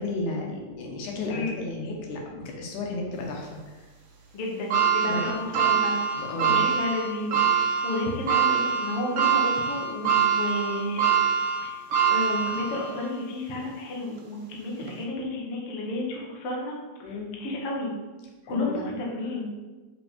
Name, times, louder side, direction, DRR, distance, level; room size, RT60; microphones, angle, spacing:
voice 1, 0.0-3.6 5.0-5.3 6.2-6.7 17.0-17.4 18.4-18.9, left 3 dB, 85° left, 0 dB, 2.6 m, -33 dB
voice 2, 4.3-11.1 11.6-11.8 12.1-17.9 18.5-19.5, left 1 dB, 55° left, -2 dB, 2.1 m, -32 dB
sound 1, 4.7-13.1 13.6-13.7 14.8-14.9, right 7 dB, 65° right, 1.2 m, -24 dB
5.6 x 5.2 x 5.1 m, 1.2 s
omnidirectional pair, 3.5 m